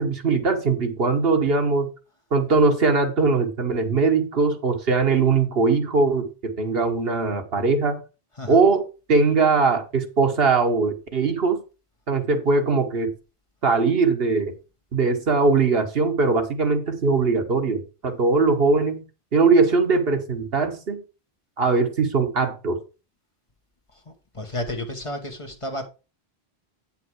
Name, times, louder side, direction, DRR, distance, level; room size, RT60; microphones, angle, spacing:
voice 1, 0.0-1.9 2.3-8.0 8.5-8.8 9.1-11.6 12.1-13.1 13.6-14.5 14.9-19.0 19.3-21.0 21.6-22.8, right 4 dB, 70° right, 1.5 m, -21 dB
voice 2, 24.3-25.9, left 1 dB, 30° left, 1.3 m, -31 dB
9.1 x 5.7 x 4.7 m
omnidirectional pair, 1.1 m